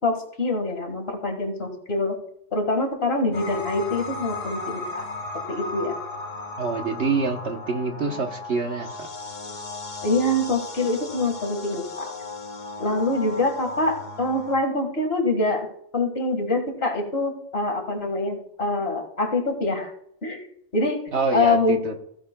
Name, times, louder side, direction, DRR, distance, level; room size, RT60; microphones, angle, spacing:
voice 1, 0.0-2.2 2.5-5.1 5.5-5.9 10.0-12.1 12.8-15.7 15.9-19.9 20.2-20.4 20.7-21.0 21.3-21.8, left 2 dB, 50° left, 4 dB, 2.0 m, -25 dB
sound 1, 3.3-14.6, left 3 dB, 65° left, 1.5 m, -36 dB
voice 2, 6.6-9.1 21.1-21.9, right 4 dB, 55° right, 4 dB, 1.2 m, -26 dB
16.0 x 9.2 x 2.2 m, 0.71 s
omnidirectional pair, 1.4 m